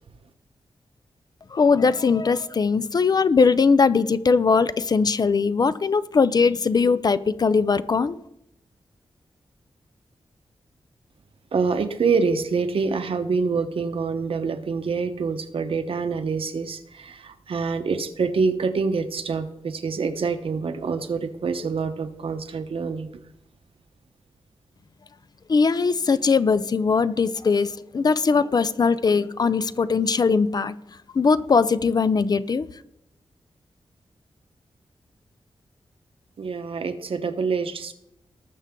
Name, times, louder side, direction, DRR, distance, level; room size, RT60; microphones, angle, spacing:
voice 1, 1.5-8.2 25.5-30.8 31.1-32.7, left 5 dB, 40° left, 15 dB, 0.4 m, -20 dB
voice 2, 11.5-23.1 36.4-37.9, right 5 dB, 65° right, 8 dB, 1.0 m, -26 dB
19.5 x 6.7 x 3.7 m, 0.81 s
wide cardioid pair, 140°, 10 cm